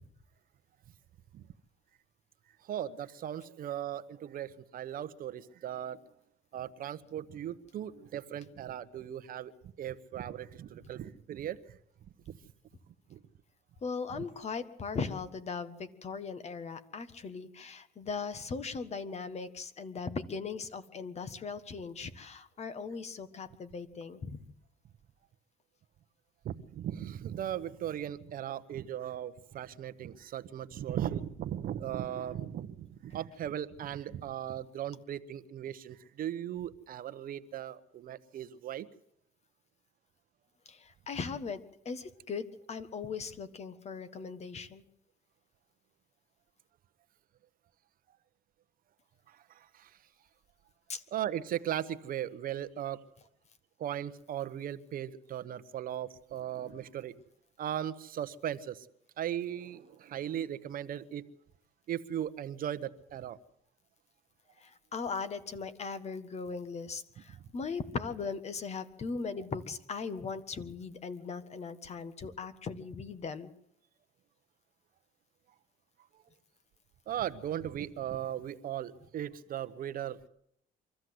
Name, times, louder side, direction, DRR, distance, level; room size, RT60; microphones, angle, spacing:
voice 1, 2.6-6.0 6.5-9.5 9.8-11.8 12.3-12.4 13.1-13.2 14.1-14.3 26.4-38.9 49.3-49.9 51.1-53.0 53.8-57.1 57.6-58.9 59.2-61.2 61.9-63.4 77.1-80.3, right 10 dB, 60° right, 11 dB, 1.0 m, -38 dB
voice 2, 13.8-24.4 40.7-44.8 50.9-51.0 64.6-73.5, left 5 dB, 40° left, 12 dB, 1.6 m, -39 dB
24.0 x 14.0 x 7.9 m, 0.73 s
cardioid pair, 110°, 17 cm